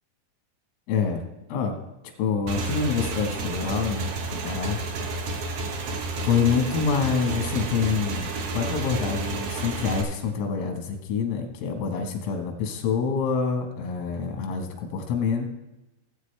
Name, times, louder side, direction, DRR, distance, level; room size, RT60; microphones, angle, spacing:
voice 1, 0.9-1.2 1.5-1.8 2.2-4.8 6.2-15.5, left 6 dB, 90° left, 3 dB, 4.0 m, -26 dB
Motorcycle / Engine, 2.5-10.0, right 3 dB, 85° right, 1.8 m, -31 dB
17.5 x 8.3 x 3.3 m, 1.0 s
omnidirectional pair, 5.7 m